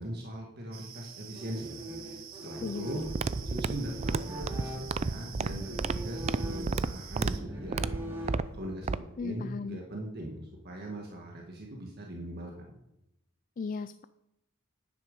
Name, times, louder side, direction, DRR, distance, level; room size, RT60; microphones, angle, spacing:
voice 1, 0.0-1.7 2.0-7.9 8.2-12.5, right 1 dB, 50° right, 0 dB, 1.7 m, -40 dB
sound 1, 0.7-7.4, right 8 dB, 85° right, 1.4 m, -48 dB
sound 2, 1.4-8.8, equal, 10° right, 2.3 m, -41 dB
sound 3, 3.0-9.0, right 4 dB, 30° right, 0.4 m, -32 dB
voice 2, 9.2-9.8 13.6-14.0, left 4 dB, 40° left, 13 dB, 0.4 m, -36 dB
10.5 x 9.5 x 5.3 m, 0.86 s
head